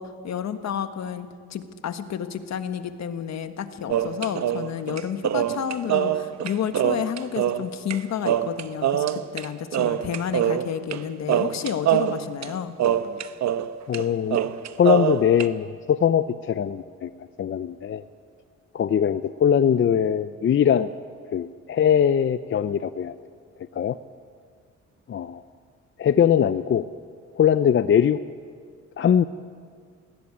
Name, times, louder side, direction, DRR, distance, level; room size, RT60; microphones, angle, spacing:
voice 1, 0.0-12.7, left 8 dB, 60° left, 9 dB, 1.5 m, -31 dB
sound 1, 3.9-8.0 8.2-9.5 9.7-11.0 11.3-13.7 13.9-14.0 14.3-15.5, right 10 dB, 65° right, 1.0 m, -24 dB
voice 2, 13.9-14.4 14.8-17.1 17.4-18.0 18.7-20.9 21.3-23.2 23.7-24.0 25.1-25.4 26.0-26.8 27.4-28.2 29.0-29.2, left 8 dB, 40° left, 12 dB, 0.6 m, -21 dB
20.0 x 17.0 x 8.7 m, 2.1 s
cardioid pair, 90°, 30 cm